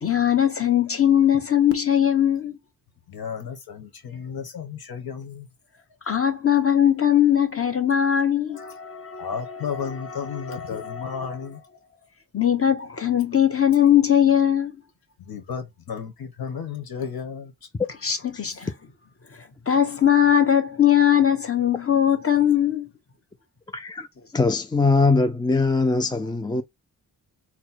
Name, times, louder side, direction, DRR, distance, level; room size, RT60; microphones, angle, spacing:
voice 1, 0.0-2.6 6.1-11.4 12.3-14.8 18.0-18.7 19.7-22.9, left 10 dB, 40° left, 1.2 m, -20 dB
voice 2, 3.1-5.5 8.5-8.7 9.2-11.6 15.2-17.5, left 6 dB, 75° left, 1.4 m, -33 dB
voice 3, 23.7-24.1 24.3-26.6, left 3 dB, 15° left, 0.3 m, -21 dB
4.2 x 2.2 x 4.2 m
cardioid pair, 85°, 36 cm